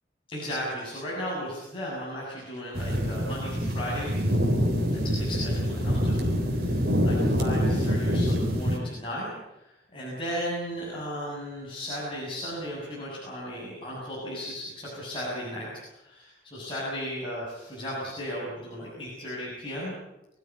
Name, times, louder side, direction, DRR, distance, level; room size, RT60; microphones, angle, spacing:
voice 1, 0.3-4.2 4.9-9.3 9.9-19.9, equal, 30° left, -6 dB, 7.6 m, -35 dB
sound 1, 2.7-8.8, equal, 55° right, 4.0 m, -25 dB
24.5 x 16.0 x 9.7 m, 0.91 s
head